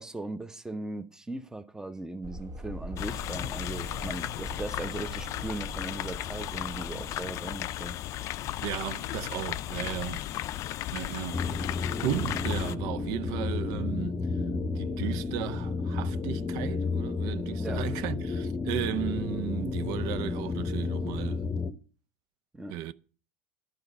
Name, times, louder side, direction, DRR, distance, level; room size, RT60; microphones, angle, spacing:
voice 1, 0.0-8.0 17.6-17.8 22.5-22.7, right 2 dB, 10° right, 0.8 m, -38 dB
sound 1, 2.2-7.2, equal, 45° right, 2.0 m, -42 dB
sound 2, 3.0-12.7, left 14 dB, 50° left, 0.4 m, -35 dB
voice 2, 8.6-10.3 10.9-11.5 12.0-14.2 14.7-21.4 22.7-22.9, right 12 dB, 65° right, 0.6 m, -35 dB
sound 3, 11.3-21.7, left 4 dB, 25° left, 0.8 m, -31 dB
11.0 x 4.9 x 6.8 m
supercardioid pair, 105°, 7 cm